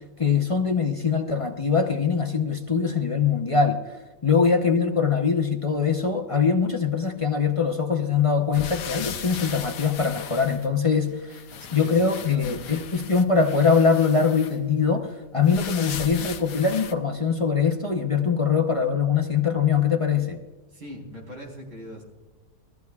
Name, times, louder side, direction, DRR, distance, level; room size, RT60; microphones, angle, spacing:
voice 1, 0.2-3.8 4.2-11.4 11.7-20.4, left 5 dB, 45° left, 2 dB, 0.4 m, -22 dB
sound 1, 8.5-11.0 11.3-14.6 15.4-16.9, left 7 dB, 75° left, 1.3 m, -37 dB
voice 2, 11.5-11.9 12.3-12.6 20.7-22.0, left 1 dB, 90° right, -2 dB, 4.7 m, -40 dB
20.5 x 14.5 x 2.4 m, 1.2 s
omnidirectional pair, 1.8 m